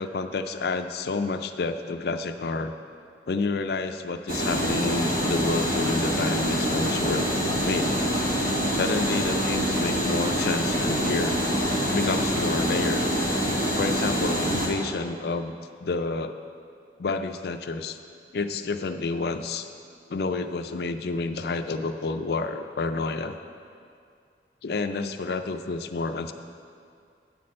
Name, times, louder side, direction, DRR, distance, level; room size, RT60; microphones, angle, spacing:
voice 1, 0.0-2.7 3.3-7.3 7.6-7.9 8.7-11.3 11.9-13.1 13.8-15.5 15.8-16.4 17.0-18.0 18.3-19.7 20.1-23.4 24.6-26.3, left 3 dB, 60° left, 8 dB, 0.4 m, -29 dB
sound 1, 4.3-14.7, equal, 60° right, 1.8 m, -25 dB
9.8 x 4.3 x 7.5 m, 2.3 s
head